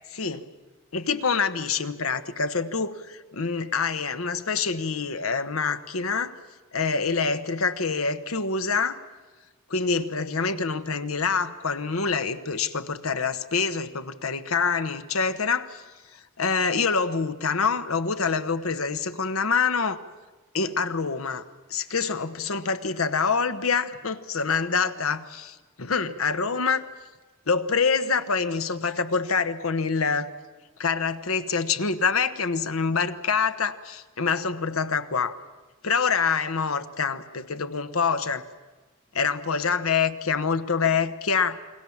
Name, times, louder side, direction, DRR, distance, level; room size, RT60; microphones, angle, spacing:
voice 1, 0.1-0.5 0.9-6.4 6.7-9.0 9.7-15.8 16.4-20.0 20.5-21.4 21.7-26.8 27.5-30.3 30.8-35.4 35.8-38.4 39.1-41.6, left 5 dB, 85° left, 11 dB, 1.2 m, -26 dB
29.5 x 21.5 x 7.3 m, 1.3 s
head